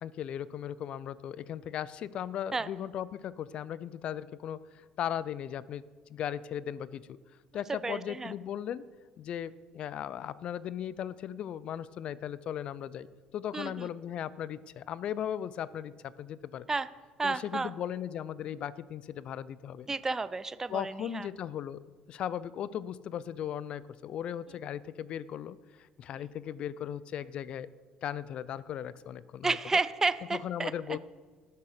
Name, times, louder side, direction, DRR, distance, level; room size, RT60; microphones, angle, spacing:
voice 1, 0.0-4.6 5.0-5.8 6.1-7.0 7.5-8.9 9.2-13.1 13.3-16.7 17.2-19.9 20.7-21.8 22.1-25.6 26.0-27.7 28.0-29.6 30.3-31.0, left 10 dB, 55° left, 18 dB, 0.4 m, -37 dB
voice 2, 7.7-8.3 13.5-13.9 16.7-16.9 17.2-17.7 19.9-21.3 29.4-30.7, right 3 dB, 20° right, 15 dB, 0.5 m, -31 dB
12.0 x 6.6 x 6.5 m, 1.5 s
supercardioid pair, 75°, 2 cm